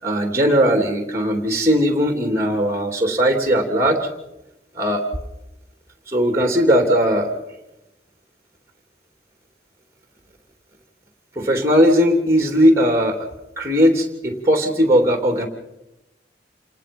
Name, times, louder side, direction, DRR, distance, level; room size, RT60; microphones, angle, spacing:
voice 1, 0.0-4.1 4.7-5.0 6.1-7.3 11.3-13.3 13.6-15.5, equal, 15° right, 4 dB, 3.1 m, -18 dB
28.0 x 19.0 x 5.4 m, 0.93 s
head